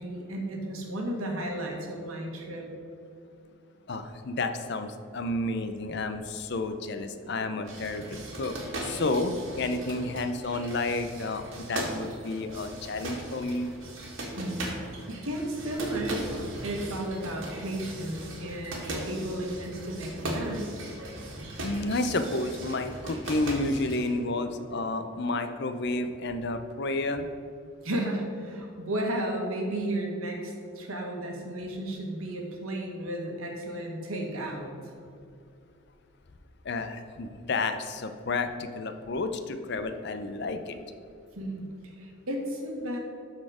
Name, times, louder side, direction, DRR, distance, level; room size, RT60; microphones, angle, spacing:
voice 1, 0.0-2.7 3.4-3.5 14.4-14.7 15.1-16.3 16.6-20.8 27.8-34.9 41.3-43.0, right 1 dB, 80° right, 1 dB, 1.5 m, -33 dB
voice 2, 3.9-13.7 21.6-27.3 36.6-40.8, left 2 dB, 50° left, 8 dB, 0.6 m, -31 dB
sound 1, 7.6-24.2, right 1 dB, 65° right, 1.7 m, -38 dB
12.5 x 4.3 x 4.9 m, 2.4 s
head